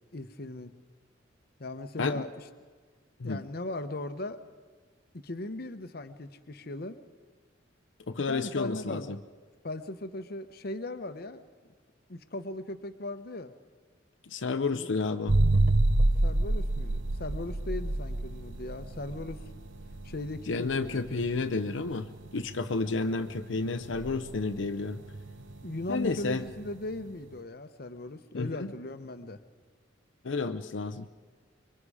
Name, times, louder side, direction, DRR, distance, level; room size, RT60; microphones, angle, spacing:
voice 1, 0.1-0.7 1.6-2.5 3.2-4.4 5.1-7.0 8.3-9.2 9.6-11.4 12.1-13.5 14.7-14.9 16.2-19.4 20.0-21.2 25.6-29.4, left 2 dB, 55° left, 9 dB, 0.9 m, -38 dB
voice 2, 8.1-9.2 14.3-15.4 20.5-22.1 22.3-25.0 25.9-26.4 28.3-28.7 30.2-31.1, left 3 dB, 85° left, 8 dB, 0.7 m, -31 dB
sound 1, 15.3-26.9, right 2 dB, 85° right, 0.9 m, -29 dB
25.5 x 23.0 x 4.9 m, 1.5 s
head